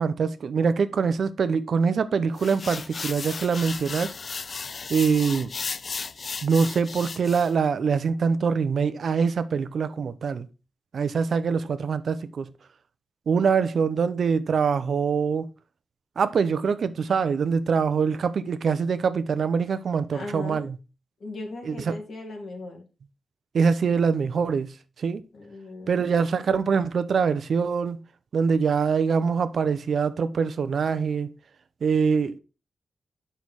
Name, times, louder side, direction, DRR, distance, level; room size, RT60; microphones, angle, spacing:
voice 1, 0.0-4.1 4.9-5.5 6.4-10.5 10.9-12.5 13.3-15.5 16.2-20.8 21.6-21.9 23.5-25.2 25.9-28.0 28.3-31.3 31.8-32.4, right 5 dB, 70° right, 0.6 m, -24 dB
sound 1, 2.4-7.5, left 4 dB, 50° left, 0.3 m, -35 dB
voice 2, 20.1-20.7 21.2-22.9 25.3-26.1, left 2 dB, 70° left, 2.2 m, -38 dB
6.3 x 5.6 x 4.7 m
wide cardioid pair, 100°, 0 cm